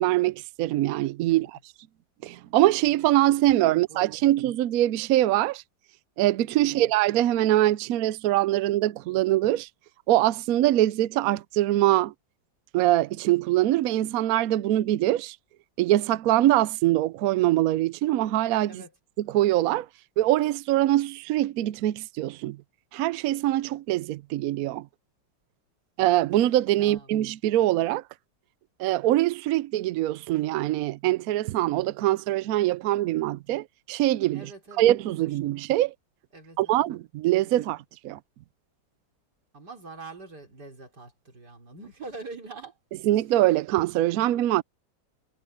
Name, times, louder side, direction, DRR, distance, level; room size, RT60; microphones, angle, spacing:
voice 1, 0.0-1.5 2.2-5.6 6.2-9.7 10.1-12.1 12.7-15.4 15.8-18.8 19.2-19.9 20.2-22.6 22.9-24.9 26.0-28.0 28.8-34.5 34.8-35.9 36.6-38.2 43.0-44.6, right 14 dB, 80° right, 0.8 m, -23 dB
voice 2, 3.7-4.3 6.6-6.9 18.7-18.9 26.7-27.1 34.3-35.5 36.3-36.9 37.4-37.6 39.5-42.8, right 3 dB, 55° right, 4.5 m, -44 dB
omnidirectional pair, 2.1 m